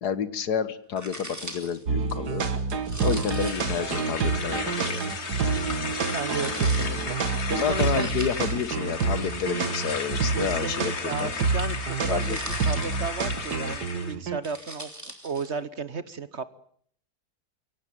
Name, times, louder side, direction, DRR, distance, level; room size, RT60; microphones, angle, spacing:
voice 1, 0.0-2.4 3.0-5.0 6.5-6.6 7.5-11.3 12.1-12.4, left 7 dB, 80° left, 14 dB, 1.8 m, -30 dB
sound 1, 1.0-1.8 2.8-3.8 4.8-5.2 6.3-6.9 7.9-8.7 10.2-11.0 12.1-13.3 14.3-15.5, right 1 dB, 10° right, 3.0 m, -41 dB
sound 2, 1.9-14.4, right 4 dB, 85° right, 2.3 m, -28 dB
sound 3, 3.2-14.2, left 4 dB, 45° left, 1.8 m, -34 dB
voice 2, 6.1-7.2 7.5-8.1 10.3-14.9 15.2-16.4, right 5 dB, 50° right, 14 dB, 1.3 m, -34 dB
23.0 x 17.5 x 9.1 m, 0.64 s
omnidirectional pair, 1.7 m